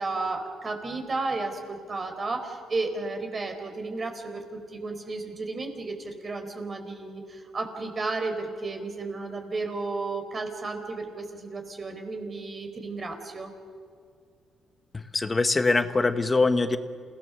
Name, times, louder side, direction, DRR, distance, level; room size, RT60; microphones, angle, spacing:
voice 1, 0.0-13.5, right 3 dB, 35° right, 5 dB, 4.3 m, -33 dB
voice 2, 14.9-16.8, left 3 dB, 25° left, 10 dB, 1.3 m, -23 dB
28.5 x 18.0 x 7.0 m, 2.2 s
cardioid pair, 90°, 0 cm